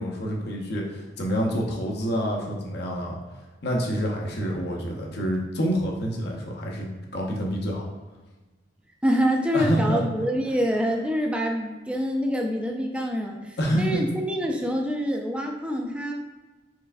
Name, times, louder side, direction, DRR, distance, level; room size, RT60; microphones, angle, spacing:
voice 1, 0.0-3.2 3.6-7.8 9.5-10.0 13.6-14.0, equal, 55° left, -1 dB, 0.7 m, -27 dB
voice 2, 9.0-16.1, equal, 5° right, 2 dB, 0.4 m, -26 dB
4.5 x 3.2 x 2.5 m, 1.2 s
head